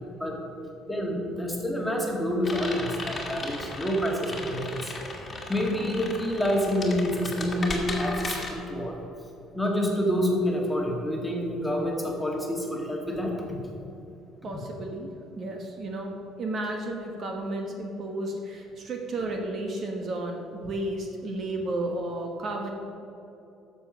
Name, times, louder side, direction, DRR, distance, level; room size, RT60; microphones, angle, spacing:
voice 1, 0.9-4.9 5.5-9.0 9.5-13.3, equal, 5° left, -1 dB, 2.0 m, -27 dB
sound 1, 2.4-8.5, left 2 dB, 25° left, 2.0 m, -36 dB
voice 2, 14.4-22.7, right 1 dB, 45° right, 2 dB, 1.2 m, -33 dB
11.5 x 7.3 x 6.1 m, 2.9 s
cardioid pair, 135°, 0 cm